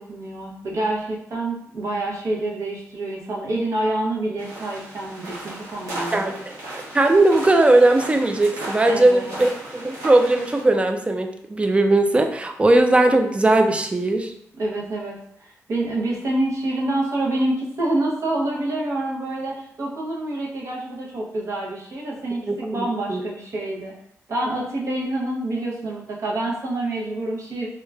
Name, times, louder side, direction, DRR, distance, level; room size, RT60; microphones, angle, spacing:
voice 1, 0.0-6.3 8.8-9.4 14.6-23.9 24.3-27.7, right 1 dB, 60° right, -3 dB, 0.7 m, -27 dB
sound 1, 4.4-10.6, right 1 dB, 80° right, 1.0 m, -36 dB
voice 2, 6.9-14.3 22.5-23.2, right 2 dB, 20° right, 5 dB, 0.4 m, -18 dB
2.9 x 2.3 x 2.2 m, 0.70 s
cardioid pair, 70°, 6 cm